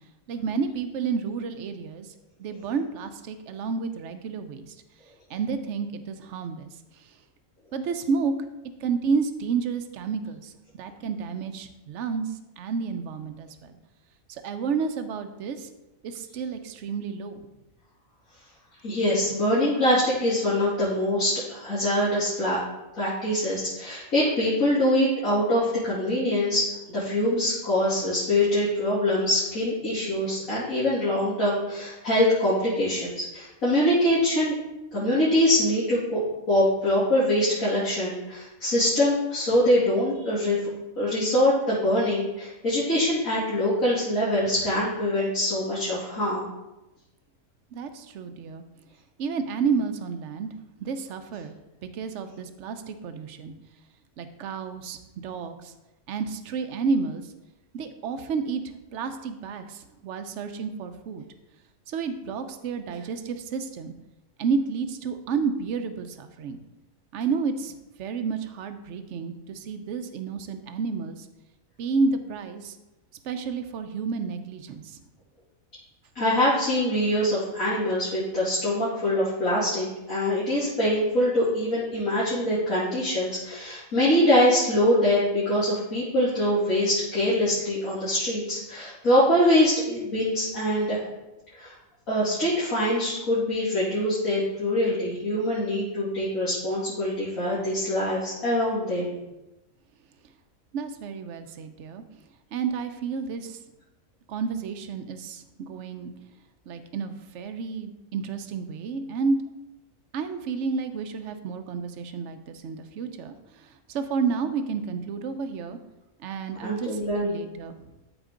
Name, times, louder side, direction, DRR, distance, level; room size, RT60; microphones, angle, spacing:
voice 1, 0.3-2.1 2.4-4.8 5.3-6.7 7.0-7.2 7.7-8.3 8.8-13.8 14.3-15.7 16.0-17.5 47.7-48.6 49.2-50.5 50.8-51.5 51.8-53.5 54.2-55.7 56.1-57.3 57.7-58.6 58.9-61.2 61.9-63.9 64.4-66.6 67.1-67.7 68.0-71.3 71.8-72.8 73.2-75.0 100.7-102.0 102.5-103.6 104.3-106.1 106.7-109.4 110.1-115.8 116.2-117.8, right 5 dB, 65° right, 9 dB, 1.0 m, -30 dB
voice 2, 18.8-22.6 22.9-34.5 34.9-36.2 36.5-40.6 41.0-46.5 76.1-91.0 91.5-91.7 92.1-99.2 116.6-117.3, left 1 dB, 80° left, -11 dB, 3.2 m, -24 dB
13.0 x 4.4 x 3.8 m, 0.98 s
omnidirectional pair, 1.4 m